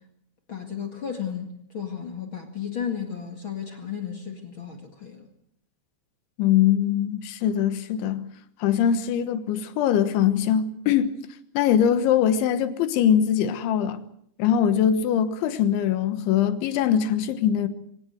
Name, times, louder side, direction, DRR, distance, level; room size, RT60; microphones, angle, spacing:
voice 1, 0.5-5.3, left 8 dB, 45° left, 1.7 m, -34 dB
voice 2, 6.4-8.2 8.6-11.1 11.6-14.0 14.4-17.7, left 9 dB, 90° left, 3.7 m, -22 dB
25.0 x 17.0 x 7.9 m
omnidirectional pair, 5.2 m